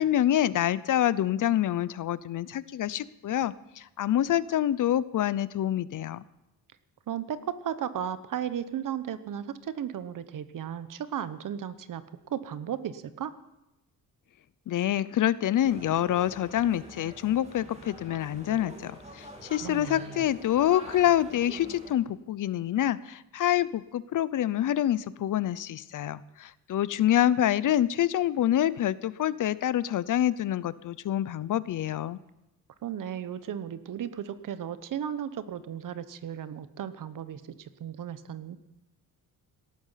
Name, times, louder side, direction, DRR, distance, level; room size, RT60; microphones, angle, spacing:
voice 1, 0.0-6.2 14.7-32.2, left 12 dB, 60° left, 18 dB, 0.7 m, -26 dB
voice 2, 7.1-12.0 12.3-13.3 19.6-20.3 32.8-38.6, right 9 dB, 60° right, 13 dB, 1.1 m, -35 dB
sound 1, 15.6-21.9, right 1 dB, 20° right, 3.0 m, -46 dB
18.0 x 13.5 x 5.7 m, 0.96 s
cardioid pair, 125°, 36 cm